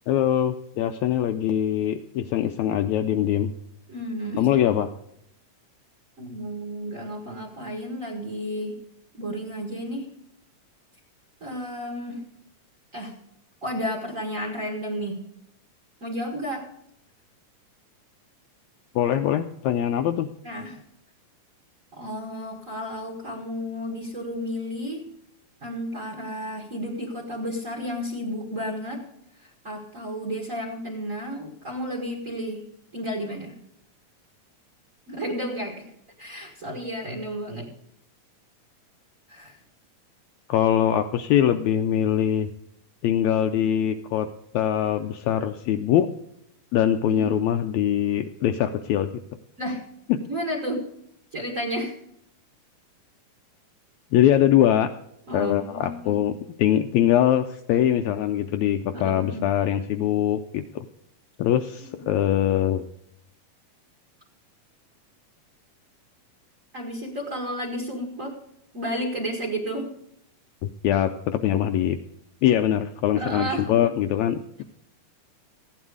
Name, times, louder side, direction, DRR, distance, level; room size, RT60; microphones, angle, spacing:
voice 1, 0.1-3.5 4.4-4.9 18.9-20.3 40.5-42.5 43.0-44.3 44.5-46.1 46.7-49.1 54.1-54.9 55.3-56.3 56.6-60.9 61.4-62.8 70.6-72.0 72.4-74.6, left 10 dB, 80° left, 7 dB, 1.7 m, -22 dB
voice 2, 3.9-4.6 6.2-8.8 9.1-10.1 11.4-12.3 12.9-13.1 13.6-15.2 16.0-16.7 20.4-20.8 21.9-25.1 25.6-29.0 29.3-32.6 32.9-33.5 35.1-35.9 36.2-37.7 39.3-39.6 47.0-47.4 49.6-49.8 50.2-50.9 51.3-52.0 55.3-56.2 58.9-59.5 61.8-62.1 66.7-68.4 68.7-69.9 73.1-74.0, equal, 35° right, 2 dB, 1.4 m, -32 dB
14.5 x 9.5 x 4.8 m, 0.74 s
omnidirectional pair, 3.7 m